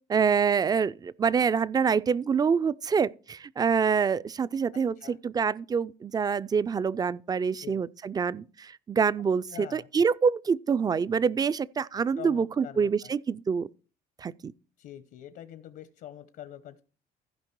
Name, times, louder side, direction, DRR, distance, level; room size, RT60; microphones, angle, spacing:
voice 1, 0.1-13.7 14.2-14.5, right 6 dB, 25° right, 0.3 m, -26 dB
voice 2, 4.7-5.2 7.6-7.8 9.5-9.9 12.2-13.1 14.8-16.8, left 11 dB, 70° left, 0.8 m, -45 dB
15.0 x 5.2 x 4.6 m
cardioid pair, 110°, 17 cm